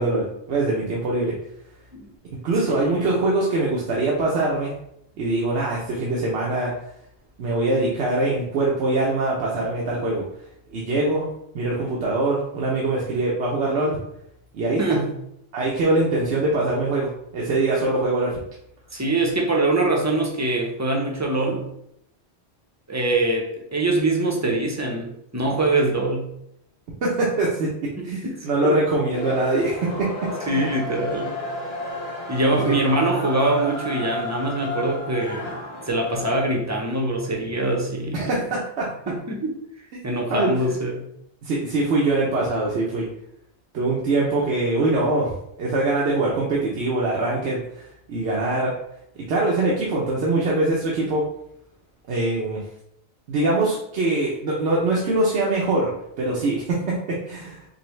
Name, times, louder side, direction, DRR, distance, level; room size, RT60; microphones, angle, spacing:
voice 1, 0.0-1.3 2.4-4.7 5.2-6.7 7.4-10.2 10.7-11.3 11.5-14.0 14.5-15.0 15.5-18.4 27.0-30.7 32.7-32.8 38.1-38.9 40.3-40.8 41.4-43.1 43.7-48.7 49.3-51.2 52.1-52.6 53.3-55.9 56.2-57.6, right 2 dB, 85° right, -4 dB, 1.0 m, -23 dB
voice 2, 14.8-15.1 18.9-21.7 22.9-26.3 28.0-28.7 30.5-31.3 32.3-35.6 35.9-38.4 39.1-39.5 40.0-41.0, right 2 dB, 20° right, 0 dB, 0.5 m, -23 dB
sound 1, 29.1-36.4, left 2 dB, 70° left, 1.0 m, -32 dB
5.1 x 2.1 x 3.1 m, 0.77 s
omnidirectional pair, 1.1 m